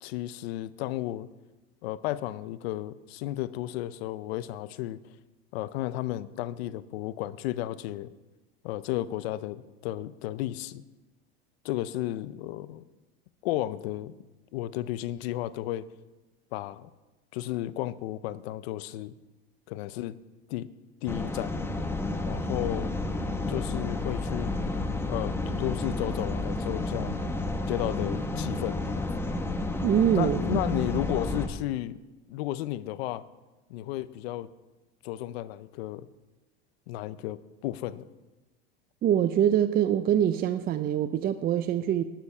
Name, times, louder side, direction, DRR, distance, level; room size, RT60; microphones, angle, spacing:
voice 1, 0.0-1.3 1.8-5.0 5.5-8.1 8.6-10.8 11.6-12.8 13.4-14.1 14.5-15.8 16.5-16.9 17.3-19.1 19.7-20.2 20.5-20.7 21.0-21.5 22.2-22.9 23.5-24.5 25.1-27.1 27.7-29.0 30.1-32.0 32.3-33.2 33.7-34.5 35.0-36.1 36.9-38.1, left 14 dB, 80° left, 17 dB, 0.6 m, -33 dB
sound 1, 21.1-31.5, left 2 dB, 10° left, 1.0 m, -31 dB
voice 2, 29.8-30.6 39.0-42.0, right 10 dB, 30° right, 11 dB, 0.5 m, -24 dB
11.5 x 9.5 x 5.6 m, 1.1 s
supercardioid pair, 115°, 31 cm